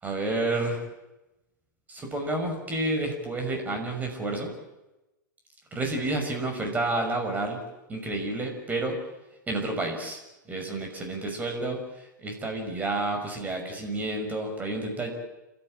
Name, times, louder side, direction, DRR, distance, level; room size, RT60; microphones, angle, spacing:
voice 1, 0.0-0.8 1.9-4.5 5.7-7.6 7.9-9.0 9.5-10.2 10.5-11.8 12.2-15.1, right 2 dB, 15° right, 3 dB, 6.1 m, -30 dB
29.5 x 14.0 x 9.0 m, 0.98 s
figure-of-eight pair, 100°, 10 cm